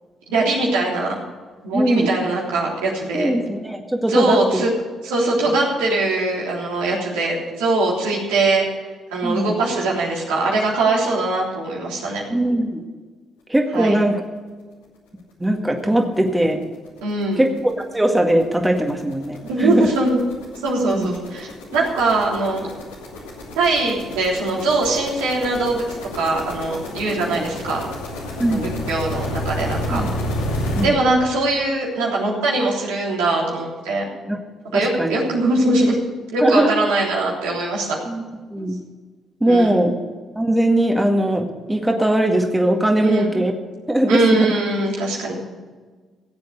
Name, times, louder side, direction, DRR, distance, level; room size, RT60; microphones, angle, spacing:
voice 1, 0.3-1.2 1.6-3.3 4.1-4.7 5.0-8.6 9.1-12.2 13.7-14.0 17.0-17.4 19.4-20.2 20.6-22.7 23.6-27.8 28.5-28.6 28.9-30.0 30.8-34.1 34.7-36.0 36.3-38.0 38.6-38.7 39.4-39.8 43.0-43.3 44.1-45.4, right 2 dB, 80° right, -3 dB, 3.4 m, -21 dB
voice 2, 1.7-2.1 3.1-4.6 5.5-5.6 9.2-9.6 12.3-12.8 13.5-14.2 15.4-16.7 17.4-19.9 20.9-21.1 27.3-27.4 28.4-28.7 29.9-30.2 30.8-30.9 34.3-34.4 34.7-35.2 36.4-36.7 38.1-38.2 38.5-38.8 39.4-39.9 40.4-43.5 43.9-44.5, right 1 dB, 10° right, 3 dB, 1.9 m, -20 dB
sound 1, 15.4-15.5 15.9-16.0 16.3-30.9, left 1 dB, 85° left, 2.5 m, -31 dB
16.5 x 8.0 x 6.7 m, 1.4 s
hypercardioid pair, 50°, 0 cm